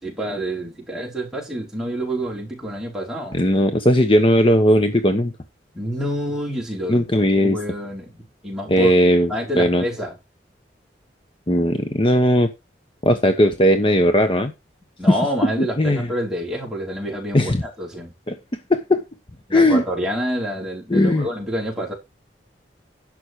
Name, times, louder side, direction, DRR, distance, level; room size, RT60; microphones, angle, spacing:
voice 1, 0.0-3.4 5.7-7.1 7.4-8.9 9.3-10.2 15.0-18.1 19.5-21.9, equal, 5° right, 4.7 m, -28 dB
voice 2, 3.3-5.3 6.9-7.6 8.7-9.3 9.6-9.8 11.5-12.5 13.0-14.5 15.1-15.2 15.4-16.1 17.3-17.6 18.3-19.0 19.5-19.8 20.9-21.3, equal, 30° left, 1.0 m, -17 dB
11.5 x 7.4 x 4.7 m
head